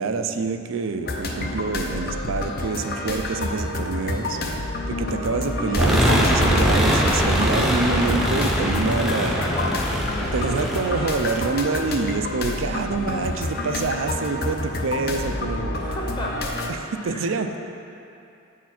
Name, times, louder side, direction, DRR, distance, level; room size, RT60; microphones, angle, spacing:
voice 1, 0.0-4.4 4.9-9.4 10.2-15.8 16.7-17.6, right 4 dB, 75° right, 8 dB, 0.4 m, -26 dB
sound 1, 1.0-16.7, left 2 dB, 45° left, 0.6 m, -28 dB
sound 2, 5.8-11.8, equal, ahead, 0.6 m, -22 dB
voice 2, 9.0-9.8 10.2-10.4 15.7-16.5 17.0-17.6, left 1 dB, 20° left, -2 dB, 0.9 m, -34 dB
8.1 x 4.6 x 5.9 m, 2.7 s
head